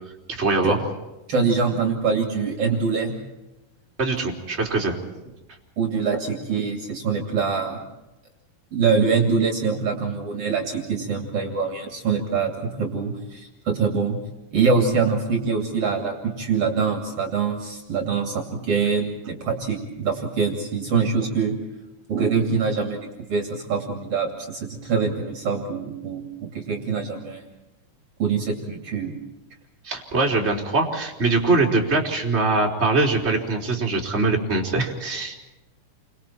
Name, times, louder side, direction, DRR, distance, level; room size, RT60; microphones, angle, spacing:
voice 1, 0.3-0.8 4.0-5.0 29.8-35.4, right 3 dB, 20° right, 0 dB, 3.8 m, -22 dB
voice 2, 1.3-3.1 5.8-7.8 8.7-12.5 12.8-14.2 14.5-21.5 22.1-27.4 28.2-29.1, right 5 dB, 50° right, 3 dB, 3.5 m, -24 dB
29.5 x 25.0 x 4.5 m, 1.0 s
omnidirectional pair, 3.5 m